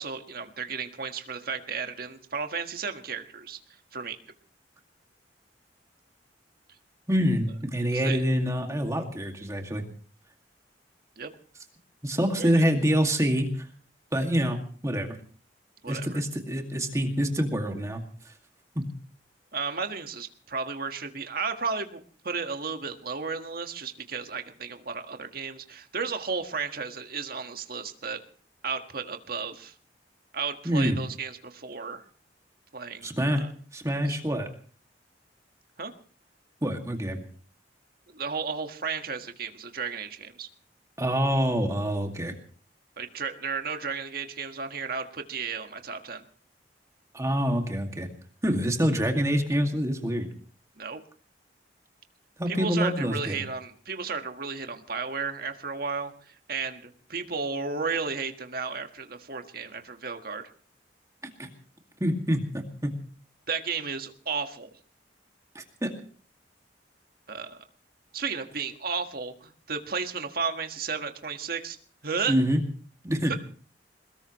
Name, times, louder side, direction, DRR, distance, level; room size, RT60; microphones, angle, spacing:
voice 1, 0.0-3.6 3.9-4.2 7.9-8.2 11.2-11.3 12.4-12.6 15.8-16.2 19.5-28.2 28.6-29.7 30.3-32.0 32.7-33.5 34.1-34.2 35.8-35.9 38.1-40.5 43.0-46.2 50.8-51.0 52.5-60.4 63.5-64.7 67.3-67.6 68.1-71.8 72.0-72.3 73.3-73.4, right 5 dB, 55° right, 6 dB, 1.6 m, -33 dB
voice 2, 7.1-9.8 12.0-13.7 14.1-15.2 15.9-18.3 18.8-18.9 30.7-31.0 33.0-33.5 33.7-34.5 36.6-37.2 41.0-42.3 47.1-48.1 48.4-50.3 52.4-53.4 61.2-61.5 62.0-62.9 65.5-65.9 72.3-72.6 73.0-73.3, equal, 20° right, 3 dB, 2.2 m, -26 dB
23.0 x 20.5 x 3.1 m, 0.42 s
head